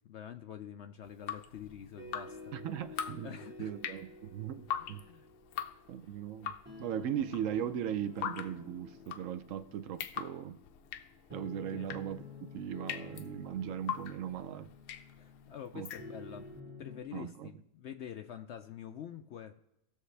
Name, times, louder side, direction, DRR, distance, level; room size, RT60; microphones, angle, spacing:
voice 1, 0.0-2.5 3.2-3.7 4.8-5.3 11.7-11.9 15.2-16.5 16.8-19.6, left 9 dB, 70° left, 0.6 m, -46 dB
Drip, 1.0-16.5, left 9 dB, 85° left, 1.2 m, -43 dB
sound 1, 1.6-17.0, left 3 dB, 5° right, 1.9 m, -51 dB
voice 2, 2.5-3.3 3.6-5.0 5.9-6.5 6.8-10.6 11.3-14.7 15.7-15.9 17.1-17.5, right 10 dB, 70° right, 0.8 m, -38 dB
18.0 x 6.5 x 3.3 m
omnidirectional pair, 1.7 m